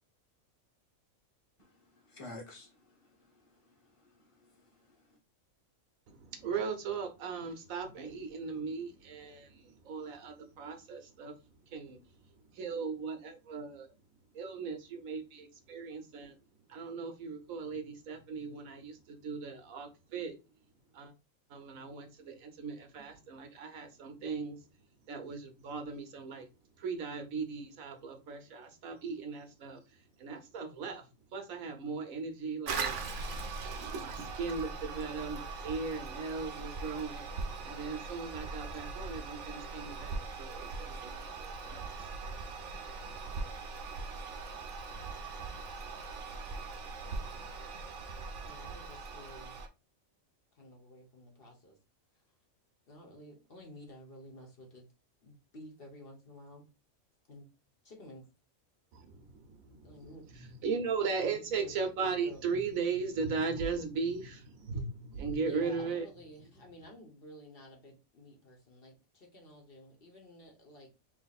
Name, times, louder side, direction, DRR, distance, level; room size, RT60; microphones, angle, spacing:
voice 1, 1.6-5.2, left 2 dB, 25° left, 1.4 m, -53 dB
voice 2, 6.1-11.4 11.7-12.0 12.5-13.9 14.3-16.3 16.7-20.4 20.9-21.1 21.5-24.6 25.1-26.5 26.8-33.0 33.9-37.3 37.6-41.9 58.9-59.9 60.3-66.1, right 5 dB, 80° right, 1.3 m, -38 dB
Toilet flush, 32.7-49.7, right 4 dB, 65° right, 1.0 m, -40 dB
voice 3, 48.4-49.6 50.5-51.8 52.9-54.9 55.2-56.7 57.3-57.5 57.8-58.2 59.8-60.2 61.0-62.4 65.4-70.9, left 1 dB, 45° left, 1.3 m, -52 dB
3.4 x 3.0 x 4.0 m
omnidirectional pair, 1.4 m